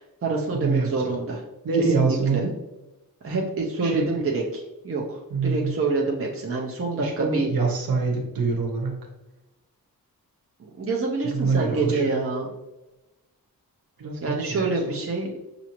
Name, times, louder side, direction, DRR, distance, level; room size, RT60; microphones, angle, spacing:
voice 1, 0.0-1.4 1.7-2.4 3.2-7.5 10.8-12.5 14.2-15.3, right 3 dB, 40° right, -1 dB, 0.7 m, -27 dB
voice 2, 0.6-1.1 1.6-2.5 3.8-4.1 5.3-5.7 7.0-9.0 11.2-12.0 14.0-15.0, right 4 dB, 70° right, 1 dB, 1.1 m, -25 dB
6.0 x 2.7 x 3.0 m, 0.99 s
wide cardioid pair, 115°, 36 cm